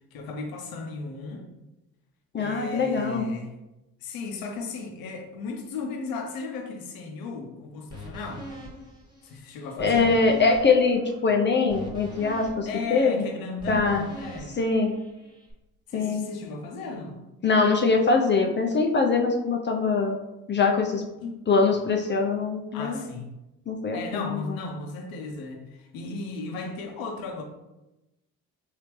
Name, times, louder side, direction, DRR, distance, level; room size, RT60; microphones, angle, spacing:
voice 1, 0.1-1.5 2.4-3.5 4.0-8.4 9.2-10.1 12.7-14.5 15.9-17.2 21.2-21.4 22.7-23.3 23.9-27.4, left 3 dB, 70° left, 3 dB, 0.8 m, -35 dB
voice 2, 2.3-3.2 9.8-13.3 13.7-14.1 14.5-14.9 15.9-16.3 17.4-20.2 20.5-21.0 21.5-23.0 23.7-24.6, left 4 dB, 30° left, 2 dB, 0.5 m, -23 dB
sound 1, 7.9-15.5, equal, 10° right, 1.3 m, -42 dB
3.5 x 2.8 x 3.0 m, 0.98 s
supercardioid pair, 65°, 36 cm